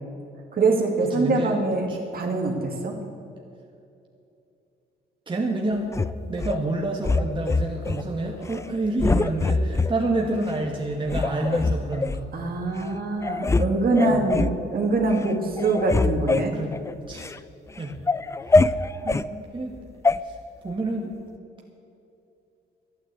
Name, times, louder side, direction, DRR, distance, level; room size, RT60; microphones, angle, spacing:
voice 1, 0.5-3.0 11.2-11.6 12.3-16.5 19.0-19.2, right 3 dB, 50° right, 1 dB, 2.3 m, -24 dB
voice 2, 1.2-1.6 1.9-2.0 5.3-6.0 6.3-12.3 14.0-14.3 16.5-16.7 17.0-17.3 17.8-17.9 19.5-19.8 20.2-20.4 20.6-21.1, right 2 dB, 25° right, -1 dB, 1.7 m, -28 dB
sound 1, 5.9-6.6 7.0-8.0 8.4-8.7 9.0-9.9 10.5-10.6 11.1-12.2 12.8-12.9 13.2-13.7 13.9-14.6 15.0-15.3 15.6-17.4 17.8-19.3 20.0-20.2, left 3 dB, 15° left, 0.4 m, -23 dB
12.0 x 9.5 x 8.1 m, 2.7 s
cardioid pair, 90°, 20 cm